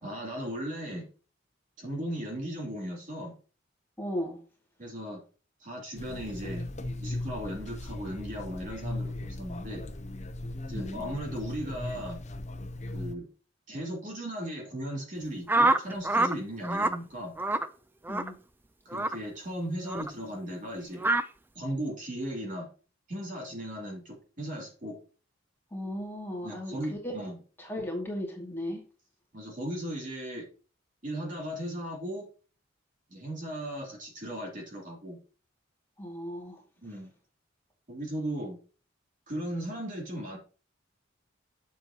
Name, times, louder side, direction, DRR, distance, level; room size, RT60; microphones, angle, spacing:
voice 1, 0.0-1.1 1.8-3.3 4.8-5.2 5.6-6.7 7.0-9.8 10.7-12.2 12.9-13.3 13.7-17.3 18.8-21.1 21.5-22.7 23.1-25.0 26.4-27.4 29.3-30.5 31.0-32.3 33.1-35.2 36.8-37.1 37.9-38.6 39.3-40.4, equal, 40° right, -1 dB, 3.1 m, -37 dB
voice 2, 4.0-4.4 10.7-11.0 18.1-18.3 25.7-26.8 27.0-27.1 27.6-28.8 36.0-36.6, left 1 dB, 10° left, -2 dB, 2.2 m, -36 dB
sound 1, 6.0-13.1, left 1 dB, 35° left, 0.8 m, -38 dB
sound 2, 15.5-16.3 16.6-17.0 17.4-17.7 18.1-18.3 18.9-19.2 19.9-20.1 21.0-21.2, right 2 dB, 10° right, 0.4 m, -25 dB
8.1 x 7.4 x 2.9 m, 0.37 s
head